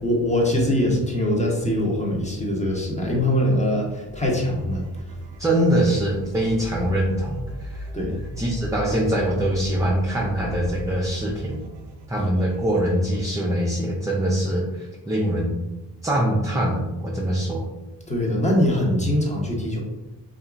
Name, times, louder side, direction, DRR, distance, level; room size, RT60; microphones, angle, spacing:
voice 1, 0.0-5.2 7.9-8.2 18.1-19.8, left 1 dB, 15° left, -2 dB, 0.8 m, -23 dB
sound 1, 4.2-13.3, right 1 dB, 70° right, 0.5 m, -38 dB
voice 2, 5.4-7.9 8.4-11.6 12.1-15.6 16.0-17.7, right 1 dB, 10° right, -3 dB, 0.4 m, -23 dB
2.7 x 2.4 x 2.3 m, 1.1 s
cardioid pair, 50°, 44 cm